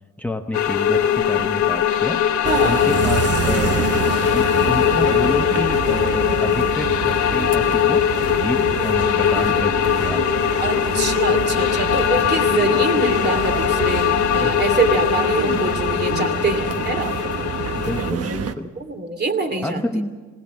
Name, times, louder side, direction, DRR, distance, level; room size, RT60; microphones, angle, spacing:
voice 1, 0.2-2.3 2.6-3.9 4.3-8.1 8.4-10.3 12.2-12.4 14.3-14.6 14.8-15.0 16.6-16.7 17.7-18.7 19.6-20.1, left 1 dB, 5° left, 6 dB, 0.9 m, -28 dB
sound 1, 0.5-18.1, left 10 dB, 70° left, 1.3 m, -21 dB
voice 2, 2.4-2.8 10.6-17.2 18.8-19.8, right 3 dB, 35° right, 6 dB, 2.5 m, -24 dB
sound 2, 2.4-18.5, right 7 dB, 50° right, 1.2 m, -27 dB
20.0 x 18.0 x 7.4 m, 1.3 s
cardioid pair, 90°, 30 cm